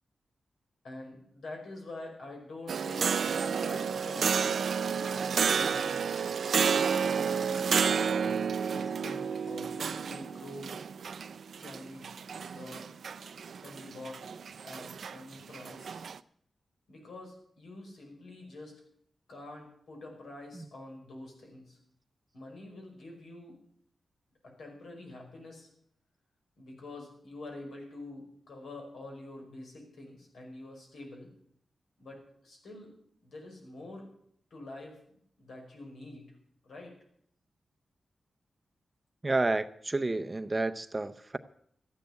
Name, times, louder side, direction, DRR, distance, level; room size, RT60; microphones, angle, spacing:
voice 1, 0.8-4.3 4.8-6.2 7.0-10.7 11.6-12.2 12.5-12.8 13.6-14.3 14.6-16.0 16.9-18.8 19.3-21.8 22.3-23.6 24.4-25.7 26.6-31.3 32.0-33.0 33.2-34.1 34.5-36.3 36.6-36.9, left 2 dB, 80° left, 5.4 m, -46 dB
sound 1, 2.7-16.2, right 6 dB, 70° right, 0.5 m, -31 dB
voice 2, 39.2-41.4, right 2 dB, 20° right, 0.6 m, -30 dB
13.5 x 9.5 x 8.2 m
wide cardioid pair, 130°, 0 cm